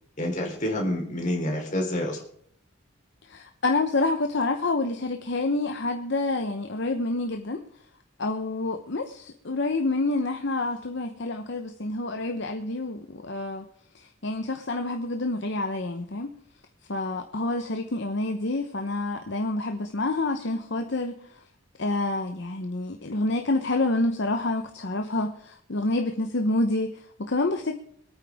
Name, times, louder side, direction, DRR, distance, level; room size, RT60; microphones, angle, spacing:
voice 1, 0.2-2.2, left 1 dB, 35° left, 0 dB, 3.4 m, -28 dB
voice 2, 3.3-7.6 8.2-13.6 13.9-16.3 16.9-21.1 21.8-27.7, left 2 dB, 55° left, 5 dB, 0.9 m, -28 dB
25.0 x 9.2 x 3.5 m, 0.65 s
head